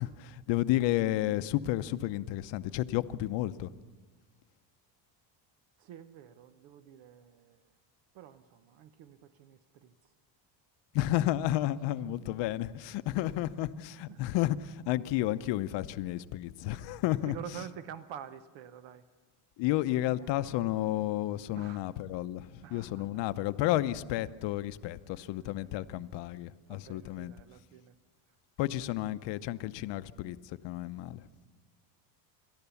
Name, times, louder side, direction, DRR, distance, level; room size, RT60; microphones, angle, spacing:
voice 1, 0.0-3.7 10.9-17.3 19.6-27.3 28.6-31.3, left 15 dB, 65° left, 13 dB, 0.8 m, -31 dB
voice 2, 5.8-7.7 8.1-10.0 12.0-12.4 13.3-13.4 13.9-14.2 16.7-16.9 17.2-19.1 20.2-20.4 20.7-20.8 21.5-21.9 22.6-23.3 23.9-24.2 25.1-25.7 26.7-28.0, right 9 dB, 70° right, 11 dB, 0.9 m, -49 dB
30.0 x 13.0 x 7.0 m, 1.4 s
cardioid pair, 160°, 47 cm